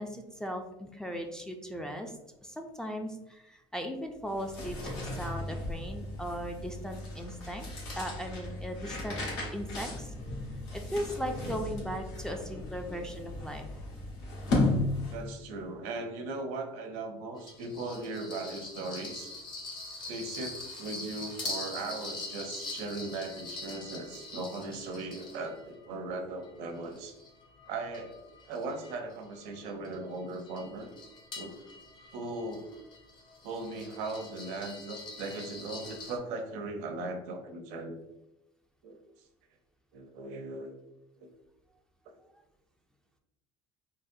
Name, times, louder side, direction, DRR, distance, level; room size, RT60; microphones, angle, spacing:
voice 1, 0.0-7.7 8.0-9.2 9.5-10.1 10.7-13.7, equal, 5° left, 3 dB, 0.3 m, -38 dB
sound 1, 4.2-15.4, left 2 dB, 85° left, 1.2 m, -35 dB
voice 2, 15.1-19.3 20.1-27.1 27.7-30.9 31.4-31.6 32.1-32.7 33.4-38.0 38.8-39.0 39.9-40.7 41.2-41.3, right 2 dB, 75° right, 5 dB, 0.6 m, -38 dB
sound 2, 17.4-25.9 26.4-36.2, left 3 dB, 40° left, 0.8 m, -44 dB
3.8 x 2.0 x 2.6 m, 0.92 s
supercardioid pair, 115°, 12 cm